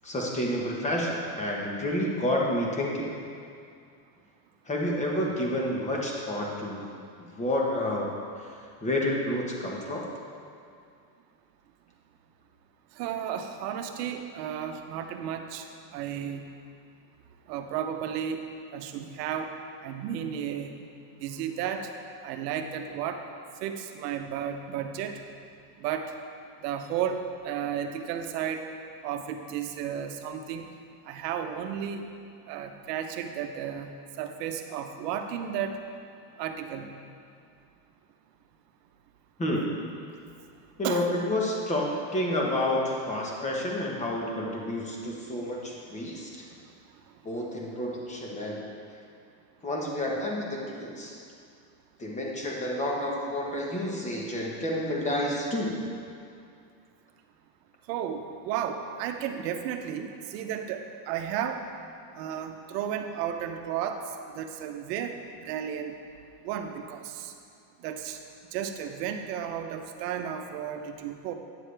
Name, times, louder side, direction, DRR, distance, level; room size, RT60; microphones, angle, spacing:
voice 1, 0.0-3.1 4.7-6.8 7.2-8.1 8.8-10.0 39.4-39.9 40.8-46.4 47.2-48.6 49.6-51.2 52.0-55.8, left 1 dB, 15° left, -2 dB, 1.1 m, -29 dB
voice 2, 12.9-15.7 15.9-16.5 17.5-18.4 18.7-19.5 19.8-20.8 21.1-21.9 22.2-23.2 23.6-25.2 25.8-26.2 26.6-28.7 29.0-30.7 31.0-32.1 32.5-35.8 36.4-36.9 40.2-40.3 40.8-41.1 46.6-46.7 57.9-61.6 62.1-66.0 66.4-67.3 67.8-68.2 68.5-71.3, right 9 dB, 80° right, 6 dB, 0.9 m, -33 dB
9.4 x 7.5 x 3.4 m, 2.4 s
supercardioid pair, 145°, 48 cm